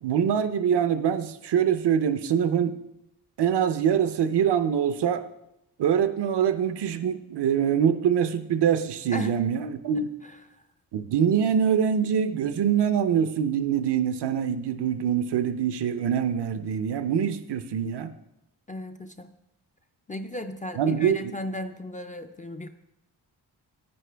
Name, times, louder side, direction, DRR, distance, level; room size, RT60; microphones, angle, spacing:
voice 1, 0.0-2.7 3.4-5.2 5.8-10.1 10.9-18.1 20.8-21.3, right 8 dB, 75° right, 10 dB, 0.7 m, -24 dB
voice 2, 10.0-10.7 18.7-19.3 20.1-22.7, left 1 dB, 20° left, 7 dB, 0.3 m, -36 dB
9.7 x 9.3 x 3.4 m, 0.86 s
wide cardioid pair, 175°, 41 cm